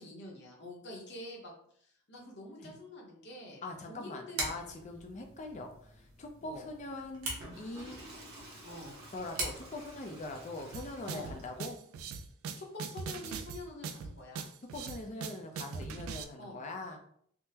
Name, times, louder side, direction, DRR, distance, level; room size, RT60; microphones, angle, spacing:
voice 1, 0.0-1.5 1.8-4.5 4.9-5.0 6.4-6.6 8.6-8.9 11.1-11.3 12.6-14.5 16.4-16.6, left 1 dB, 55° left, -2 dB, 0.9 m, -47 dB
voice 2, 3.6-8.0 9.1-11.8 14.7-17.0, left 2 dB, 35° left, 3 dB, 0.4 m, -42 dB
sound 1, 4.4-11.6, right 2 dB, 90° right, 1.0 m, -43 dB
Water / Toilet flush, 7.2-11.8, right 1 dB, 50° right, 1.0 m, -52 dB
sound 2, 10.7-16.2, right 5 dB, 70° right, 0.3 m, -41 dB
3.6 x 2.0 x 2.8 m, 0.64 s
head